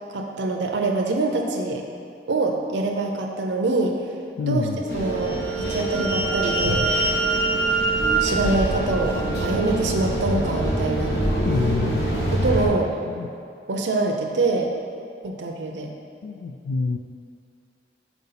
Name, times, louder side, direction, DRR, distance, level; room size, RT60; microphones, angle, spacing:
voice 1, 0.1-1.8 2.3-4.0 4.4-5.4 5.7-6.9 8.2-11.2 12.3-12.9 13.7-14.7 15.2-15.9, right 2 dB, 85° right, 1 dB, 0.6 m, -24 dB
voice 2, 4.4-4.8 11.4-12.1 13.2-13.3 16.2-17.0, left 4 dB, 90° left, 4 dB, 0.4 m, -26 dB
sound 1, 4.9-12.7, right 1 dB, 65° left, 1.5 m, -26 dB
sound 2, 5.2-9.7, right 3 dB, 15° right, 0.5 m, -26 dB
5.4 x 4.7 x 5.6 m, 2.4 s
head